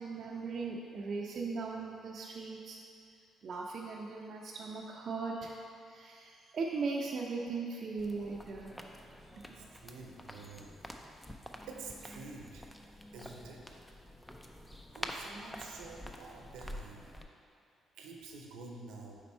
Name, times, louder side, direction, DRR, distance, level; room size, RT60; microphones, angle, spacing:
voice 1, 0.0-2.8 3.4-8.7 9.3-9.7, right 4 dB, 55° right, -3 dB, 0.4 m, -39 dB
sound 1, 8.0-17.2, equal, 10° left, 0.4 m, -48 dB
voice 2, 9.6-10.7 11.7-12.6 13.1-13.6 14.9-17.0 17.9-19.2, right 3 dB, 90° right, 1 dB, 0.7 m, -48 dB
5.0 x 4.3 x 4.3 m, 2.4 s
cardioid pair, 90°, 0 cm